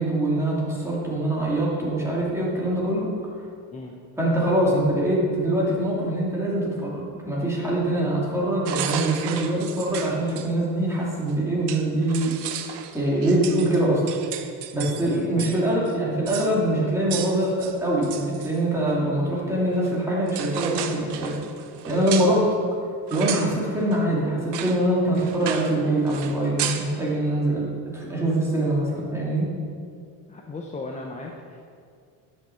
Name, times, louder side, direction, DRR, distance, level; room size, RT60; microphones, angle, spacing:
voice 1, 0.0-3.1 4.2-12.3 12.9-14.0 14.7-21.3 21.9-22.4 23.1-29.5, right 1 dB, 5° right, -6 dB, 2.8 m, -24 dB
sound 1, 8.7-10.5 11.3-11.4 11.7-15.6 15.9-16.0 16.3-16.5 17.1-18.6 19.8-20.0 20.3-22.4 23.1-23.5 23.9-24.0 24.5-24.8 25.1-25.8 26.1-26.9, right 9 dB, 60° right, 1.0 m, -33 dB
voice 2, 15.0-15.5 30.3-31.6, left 2 dB, 15° left, 0 dB, 0.7 m, -35 dB
10.5 x 7.9 x 7.0 m, 2.3 s
cardioid pair, 160°, 45 cm